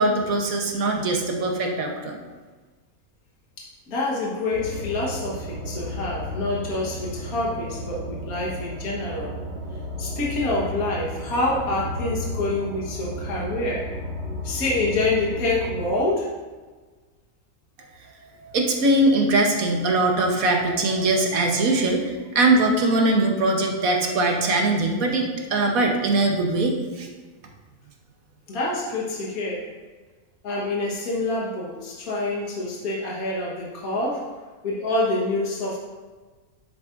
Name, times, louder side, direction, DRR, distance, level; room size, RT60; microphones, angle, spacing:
voice 1, 0.0-2.2 18.4-27.1, right 2 dB, 70° right, 2 dB, 1.5 m, -21 dB
voice 2, 3.6-9.4 10.0-13.9 14.4-16.3 28.5-29.7 30.4-34.3 34.6-35.8, left 2 dB, 75° left, -4 dB, 1.8 m, -27 dB
sound 1, 4.5-15.9, left 1 dB, 50° right, 2.1 m, -33 dB
9.6 x 7.8 x 2.6 m, 1.3 s
omnidirectional pair, 1.6 m